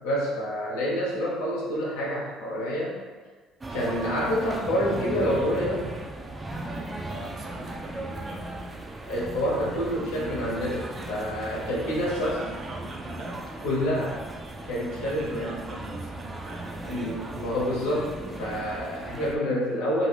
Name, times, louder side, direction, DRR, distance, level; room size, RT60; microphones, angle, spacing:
voice 1, 0.0-3.0 3.7-5.9 9.1-12.4 13.6-14.2 14.7-15.5 16.8-20.1, equal, 85° left, -5 dB, 0.9 m, -28 dB
sound 1, 3.6-19.4, right 2 dB, 20° right, 0.4 m, -37 dB
voice 2, 7.0-8.7 11.8-13.4 14.9-17.2, right 1 dB, 50° right, 0 dB, 0.7 m, -42 dB
2.8 x 2.6 x 3.3 m, 1.4 s
supercardioid pair, 70°, 0 cm